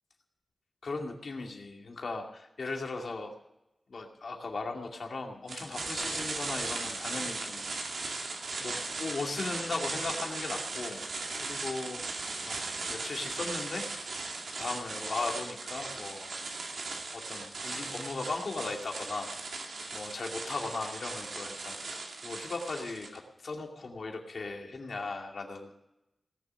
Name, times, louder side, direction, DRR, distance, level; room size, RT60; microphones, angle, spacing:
voice 1, 0.8-3.3 3.9-8.2 8.6-11.0 11.4-13.9 14.5-16.3 17.1-19.3 19.9-25.7, left 3 dB, 70° left, 2 dB, 2.5 m, -38 dB
sound 1, 5.5-23.2, right 3 dB, 90° right, 2.2 m, -38 dB
18.0 x 7.1 x 9.6 m, 0.90 s
wide cardioid pair, 70°, 0 cm